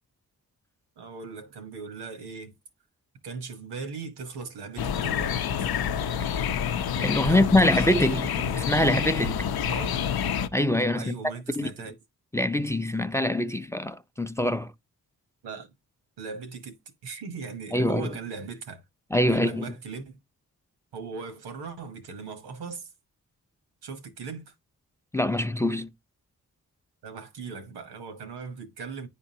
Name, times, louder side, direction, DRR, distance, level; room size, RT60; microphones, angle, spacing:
voice 1, 1.0-2.5 3.2-5.7 7.2-8.6 9.7-10.0 10.9-11.9 15.4-15.7 16.2-16.7 17.0-18.8 19.3-20.2 20.9-22.9 23.8-24.5 27.0-29.1, right 5 dB, 85° right, 1.1 m, -38 dB
sound 1, 4.8-10.5, left 8 dB, 70° left, 0.6 m, -28 dB
voice 2, 7.0-8.3 8.5-9.5 10.5-11.2 11.6-11.7 12.3-14.7 17.7-18.1 19.1-19.6 25.1-25.9, left 1 dB, 5° left, 0.5 m, -24 dB
9.8 x 3.7 x 2.8 m
supercardioid pair, 40°, 39 cm